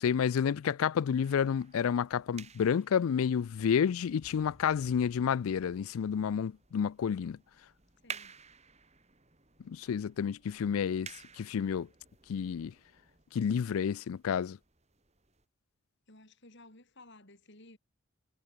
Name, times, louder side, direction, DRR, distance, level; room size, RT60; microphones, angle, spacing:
voice 1, 0.0-7.4 9.7-11.1 11.4-11.9 12.3-12.7 13.3-14.6, left 7 dB, 70° left, 0.3 m, -30 dB
sound 1, 1.2-15.5, right 6 dB, 30° right, 5.2 m, -53 dB
sound 2, 4.2-6.4 6.7-6.8, equal, 25° left, 3.9 m, -61 dB
voice 2, 8.0-8.3 16.1-17.8, left 2 dB, 50° left, 5.4 m, -55 dB
head